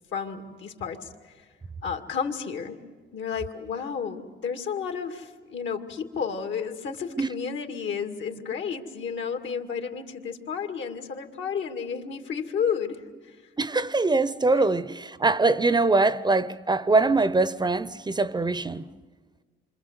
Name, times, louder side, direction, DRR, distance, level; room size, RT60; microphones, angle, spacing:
voice 1, 0.1-1.5 1.8-2.8 3.1-13.4 14.5-14.6, left 6 dB, 70° left, 2.4 m, -32 dB
voice 2, 13.6-18.9, right 3 dB, 20° right, 0.7 m, -23 dB
28.0 x 25.5 x 8.1 m
cardioid pair, 90°, 20 cm